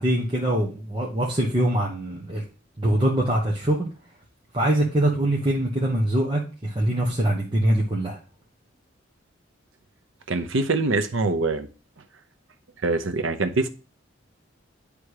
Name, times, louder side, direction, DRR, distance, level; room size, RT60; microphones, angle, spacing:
voice 1, 0.0-2.4 2.8-3.8 4.5-8.2, right 1 dB, 25° right, 1.1 m, -23 dB
voice 2, 10.3-11.7 12.8-13.7, right 3 dB, 85° right, 0.7 m, -24 dB
9.9 x 3.5 x 4.8 m
head